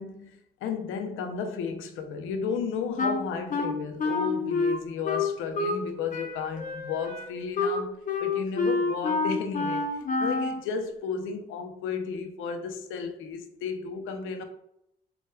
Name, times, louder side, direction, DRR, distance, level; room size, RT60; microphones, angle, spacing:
voice 1, 0.0-14.4, left 5 dB, 85° left, 0.5 m, -33 dB
Wind instrument woodwind instrument, 3.0-5.9 6.1-10.6, left 3 dB, 40° left, 0.6 m, -28 dB
4.4 x 2.2 x 2.2 m
cardioid pair, 90°, 20 cm